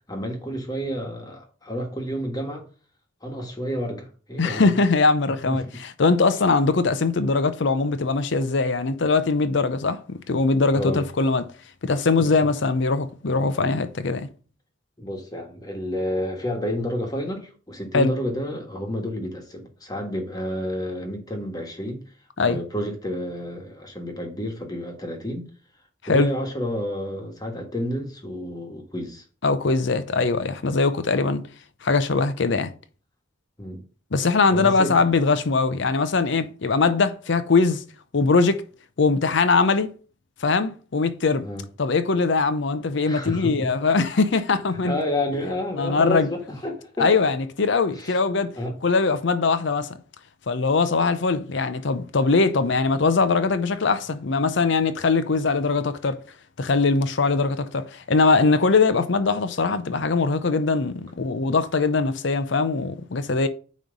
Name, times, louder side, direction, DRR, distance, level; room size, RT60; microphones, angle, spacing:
voice 1, 0.1-2.6 3.2-4.8 5.4-5.8 10.7-11.0 12.2-12.5 15.0-22.0 22.4-25.5 26.0-29.2 33.6-33.8 34.5-34.9 41.4-41.7 43.1-43.7 44.8-47.1 47.9-48.2 48.5-48.8, equal, 20° left, 1.5 m, -30 dB
voice 2, 4.4-11.5 11.8-14.3 17.9-18.1 22.4-22.6 26.0-26.3 29.4-31.4 31.8-32.7 34.1-37.8 38.1-38.7 39.0-39.9 40.4-41.5 41.8-44.9 45.8-46.3 47.0-48.5 48.8-49.9 50.5-56.2 56.6-63.5, left 4 dB, 65° left, 0.6 m, -21 dB
9.2 x 3.2 x 5.2 m
head